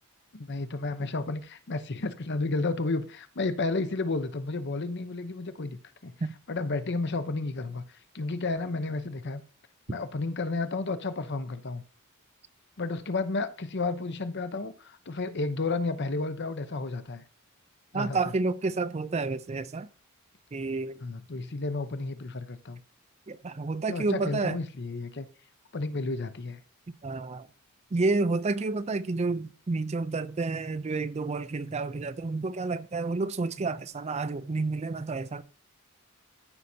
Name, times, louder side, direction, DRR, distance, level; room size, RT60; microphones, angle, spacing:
voice 1, 0.3-6.1 6.5-9.4 9.9-11.8 12.8-17.2 17.9-18.3 21.0-22.8 23.9-25.3 25.7-26.6, left 3 dB, 50° left, 0.8 m, -32 dB
voice 2, 17.9-19.9 20.5-21.0 23.3-24.6 27.0-27.5 27.9-35.4, right 3 dB, 30° right, 0.4 m, -30 dB
14.5 x 5.7 x 2.7 m
head